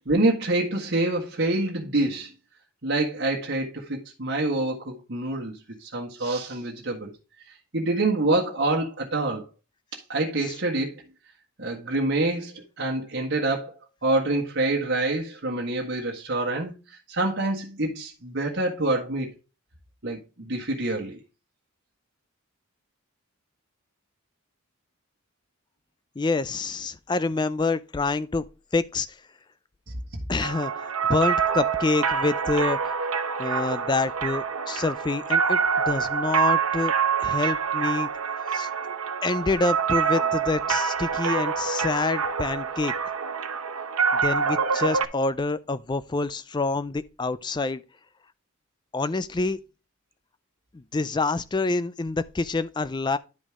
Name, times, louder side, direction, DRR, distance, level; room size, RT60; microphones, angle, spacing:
voice 1, 0.0-2.3 2.8-5.5 5.8-7.1 7.7-9.4 9.9-10.9 11.6-13.7 14.0-16.7 17.1-19.3 20.0-21.2, right 2 dB, 50° right, 1.5 m, -26 dB
voice 2, 26.2-28.4 28.7-29.1 30.3-32.9 33.4-35.6 35.9-36.9 37.2-38.1 38.5-38.7 39.2-42.9 44.1-47.8 48.9-49.6 50.7-53.2, left 3 dB, 20° left, 0.4 m, -27 dB
sound 1, 30.4-45.0, right 6 dB, 80° right, 0.9 m, -26 dB
10.5 x 5.2 x 3.5 m
head